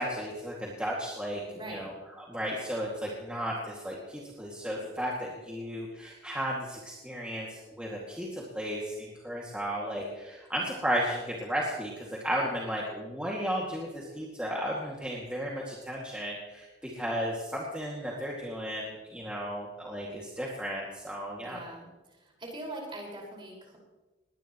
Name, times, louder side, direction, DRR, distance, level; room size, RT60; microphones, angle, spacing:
voice 1, 0.0-1.4 1.7-1.9 2.3-21.6, equal, 5° right, -4 dB, 2.2 m, -34 dB
voice 2, 1.5-1.9 21.4-23.8, right 1 dB, 30° right, -2 dB, 5.2 m, -42 dB
20.5 x 19.0 x 3.1 m, 1.1 s
head